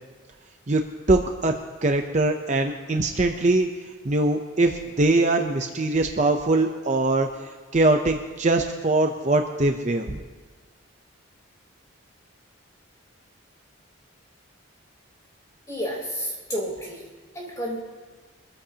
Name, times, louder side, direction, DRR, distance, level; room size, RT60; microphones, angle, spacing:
voice 1, 0.7-1.5 1.8-3.7 4.0-10.2, right 2 dB, 35° right, 4 dB, 0.6 m, -22 dB
voice 2, 15.7-17.1 17.3-17.8, equal, 15° left, -3 dB, 3.8 m, -31 dB
24.0 x 14.5 x 2.9 m, 1.3 s
head